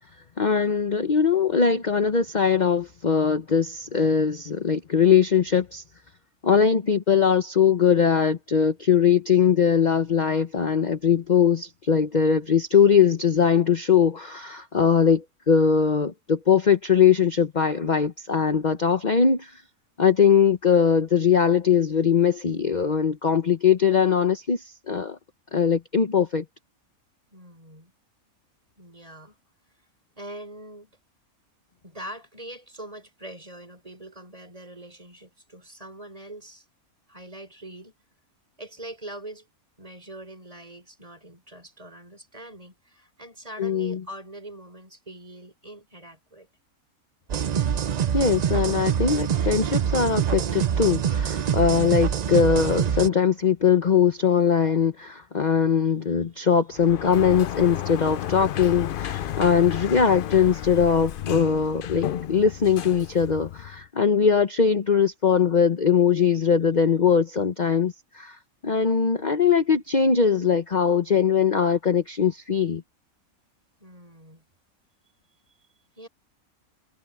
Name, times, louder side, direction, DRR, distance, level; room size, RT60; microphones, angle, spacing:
voice 1, 0.4-5.8 6.4-19.6 20.0-25.2 25.5-26.4 43.6-44.0 48.1-72.8, left 7 dB, 35° left, 1.0 m, -21 dB
voice 2, 27.3-27.9 28.8-29.4 30.2-31.0 31.8-36.7 37.1-37.9 38.6-39.5 39.8-46.5 73.8-74.4 76.0-76.1, right 1 dB, 25° right, 4.5 m, -43 dB
sound 1, 47.3-53.1, right 8 dB, 80° right, 0.3 m, -25 dB
Sliding door, 56.7-63.9, left 11 dB, 75° left, 0.5 m, -32 dB
omnidirectional pair, 1.5 m